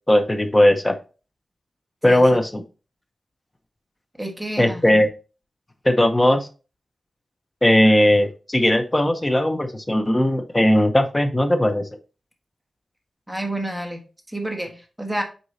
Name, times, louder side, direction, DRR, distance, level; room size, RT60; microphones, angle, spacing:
voice 1, 0.1-1.0 2.0-2.6 4.6-5.1 5.8-6.5 7.6-11.9, left 1 dB, 15° left, 7 dB, 0.8 m, -18 dB
voice 2, 4.2-5.0 13.3-14.0 14.3-15.2, right 1 dB, 5° right, 2 dB, 1.4 m, -29 dB
8.0 x 4.5 x 2.8 m, 0.34 s
wide cardioid pair, 140°, 0 cm